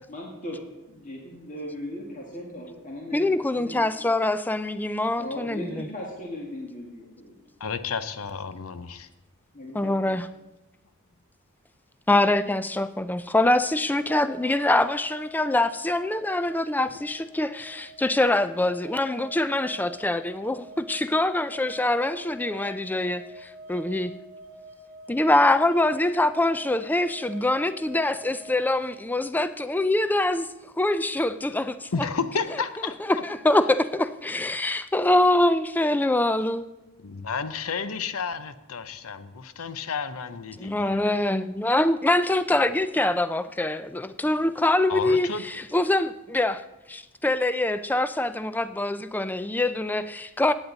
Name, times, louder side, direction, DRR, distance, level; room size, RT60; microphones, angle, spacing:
voice 1, 0.1-4.0 5.2-7.4 9.5-9.9, left 1 dB, 35° left, -2 dB, 1.8 m, -38 dB
voice 2, 3.1-5.9 9.7-10.2 12.1-24.1 25.1-30.5 30.8-31.9 33.2-36.6 40.6-46.6 46.9-50.5, left 2 dB, 10° left, 12 dB, 0.3 m, -24 dB
voice 3, 7.6-9.1 31.9-33.2 37.0-41.1 44.9-45.4, left 5 dB, 70° left, 12 dB, 0.7 m, -32 dB
sound 1, 13.9-28.7, right 2 dB, 60° right, 0.7 m, -45 dB
16.0 x 8.8 x 4.0 m, 1.0 s
head